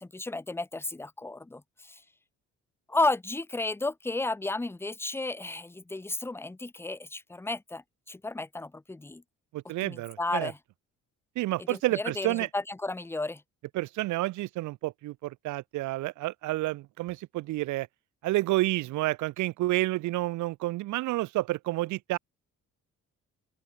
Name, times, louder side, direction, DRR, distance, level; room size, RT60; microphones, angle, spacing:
voice 1, 0.0-2.0 2.9-9.2 9.8-10.6 11.7-13.4, left 2 dB, 10° left, 0.6 m, -33 dB
voice 2, 9.5-10.5 11.4-12.5 13.7-17.9 18.2-22.2, right 18 dB, 75° right, 0.5 m, -29 dB
open air
cardioid pair, 90°, 30 cm